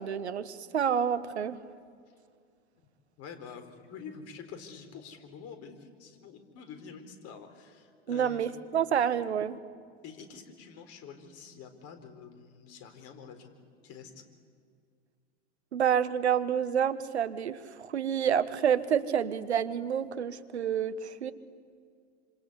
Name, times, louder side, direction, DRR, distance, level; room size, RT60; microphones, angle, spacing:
voice 1, 0.0-1.6 8.1-9.6 15.7-21.3, right 8 dB, 90° right, 13 dB, 1.3 m, -28 dB
voice 2, 3.2-8.6 10.0-13.5 13.8-14.2, left 6 dB, 50° left, 7 dB, 4.2 m, -47 dB
26.5 x 26.5 x 8.2 m, 2.2 s
hypercardioid pair, 85°, 32 cm